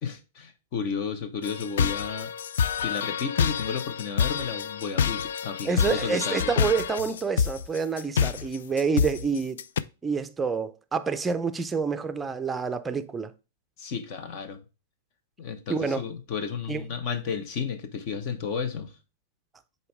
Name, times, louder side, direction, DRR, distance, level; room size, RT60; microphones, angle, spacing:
voice 1, 0.0-2.3 2.8-6.5 13.8-14.6 15.4-18.9, left 6 dB, 45° left, 1.0 m, -33 dB
sound 1, 1.4-9.8, left 7 dB, 75° left, 0.4 m, -27 dB
voice 2, 5.6-9.6 10.0-13.3 15.7-16.0 16.7-16.8, right 5 dB, 10° right, 0.5 m, -28 dB
6.8 x 4.2 x 3.4 m
hypercardioid pair, 135°, 0 cm